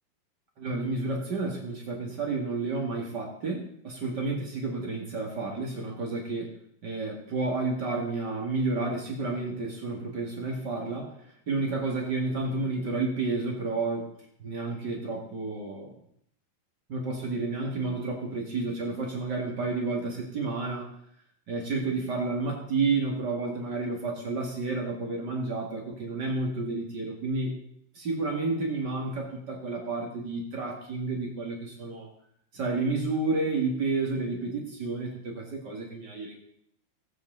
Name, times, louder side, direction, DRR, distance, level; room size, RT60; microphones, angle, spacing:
voice 1, 0.6-6.5 6.8-11.1 11.5-14.1 14.4-15.9 16.9-20.9 21.5-27.6 27.9-32.1 32.5-36.4, right 3 dB, 50° right, 0 dB, 1.3 m, -31 dB
19.5 x 7.8 x 4.0 m, 0.70 s
omnidirectional pair, 5.2 m